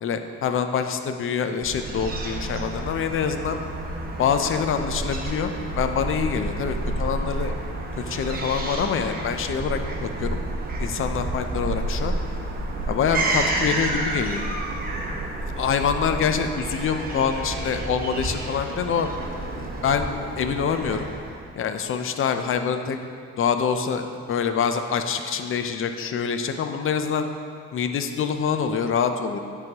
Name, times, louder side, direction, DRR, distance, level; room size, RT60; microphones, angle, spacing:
voice 1, 0.0-3.6 4.2-7.5 8.0-10.4 10.8-12.1 12.9-14.4 15.4-19.1 19.5-21.1 21.6-23.0 23.4-27.3 27.7-29.4, left 6 dB, 45° left, 7 dB, 0.5 m, -25 dB
Fowl / Gull seagull, 1.6-21.5, right 2 dB, 30° right, 0.9 m, -30 dB
10.5 x 3.8 x 2.9 m, 2.3 s
cardioid pair, 90°, 30 cm